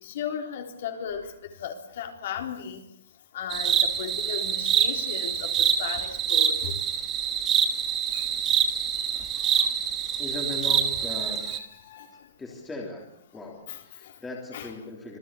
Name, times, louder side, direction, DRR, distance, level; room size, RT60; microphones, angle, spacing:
voice 1, 0.0-1.3 1.6-2.8 3.3-6.8 8.1-8.2 11.2-12.1 13.7-13.8 14.5-14.7, left 8 dB, 45° left, 4 dB, 3.9 m, -36 dB
sound 1, 3.5-11.6, right 8 dB, 15° right, 1.4 m, -25 dB
voice 2, 10.2-11.5 12.4-13.1 13.3-15.2, left 3 dB, 5° left, 0 dB, 3.2 m, -38 dB
26.5 x 18.5 x 8.6 m, 0.72 s
hypercardioid pair, 180°, 0 cm